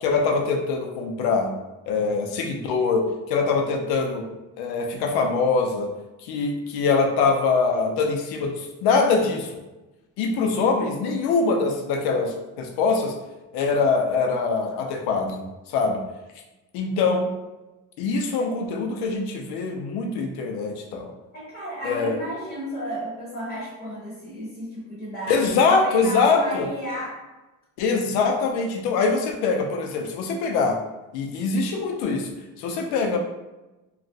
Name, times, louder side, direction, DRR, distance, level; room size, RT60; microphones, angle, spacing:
voice 1, 0.0-1.5 1.9-4.2 4.6-5.9 6.2-9.5 10.2-13.1 13.5-15.4 15.7-16.0 16.7-17.3 18.0-21.1 21.8-22.2 25.3-26.6 27.8-30.8 31.1-33.2, left 4 dB, 80° left, 3 dB, 0.6 m, -23 dB
voice 2, 21.3-27.2, equal, 20° left, -6 dB, 0.8 m, -33 dB
3.0 x 2.4 x 2.7 m, 1.1 s
cardioid pair, 165°, 38 cm